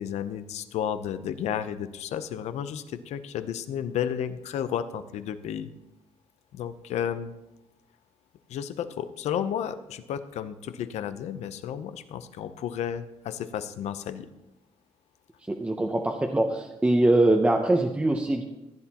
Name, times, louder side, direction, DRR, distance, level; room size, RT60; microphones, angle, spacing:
voice 1, 0.0-5.7 6.5-7.3 8.5-14.3, left 9 dB, 85° left, 11 dB, 0.7 m, -32 dB
voice 2, 15.5-18.4, right 1 dB, 10° right, 2 dB, 0.7 m, -23 dB
15.5 x 10.5 x 2.9 m, 0.98 s
cardioid pair, 135°, 11 cm